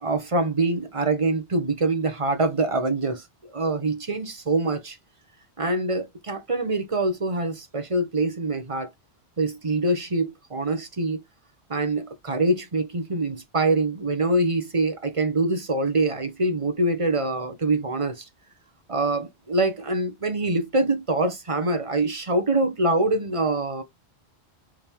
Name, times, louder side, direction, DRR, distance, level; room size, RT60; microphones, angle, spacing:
voice 1, 0.0-3.2 3.5-5.0 5.6-8.9 9.4-11.2 11.7-18.2 18.9-23.8, right 2 dB, 30° right, 1.2 m, -24 dB
5.4 x 3.9 x 4.6 m
omnidirectional pair, 1.1 m